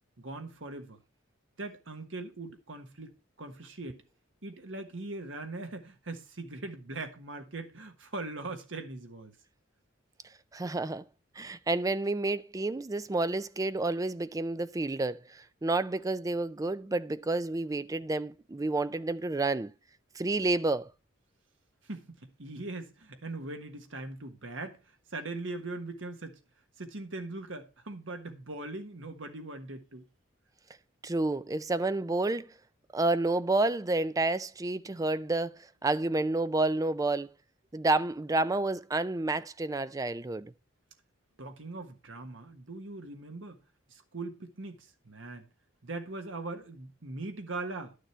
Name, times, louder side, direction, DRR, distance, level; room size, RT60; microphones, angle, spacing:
voice 1, 0.2-1.0 1.6-4.0 4.4-9.4 21.8-24.8 25.1-26.4 26.8-30.0 41.4-43.6 43.9-45.5 45.8-47.9, right 2 dB, 70° right, 1.5 m, -40 dB
voice 2, 10.5-11.0 11.4-19.7 20.1-20.9 31.0-32.5 32.9-37.3 37.7-40.5, right 2 dB, 15° right, 0.4 m, -30 dB
11.5 x 6.6 x 4.4 m
head